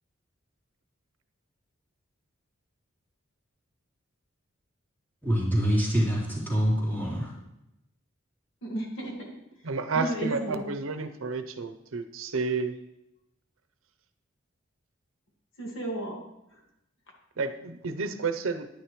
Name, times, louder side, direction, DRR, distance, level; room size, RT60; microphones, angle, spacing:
voice 1, 5.2-7.3, equal, 10° left, -7 dB, 3.2 m, -25 dB
voice 2, 8.6-9.3 9.9-10.6 15.6-16.2, right 1 dB, 65° left, 0 dB, 1.9 m, -33 dB
voice 3, 9.6-12.7 17.4-18.7, right 4 dB, 80° right, 9 dB, 0.7 m, -31 dB
10.0 x 9.7 x 3.1 m, 0.86 s
head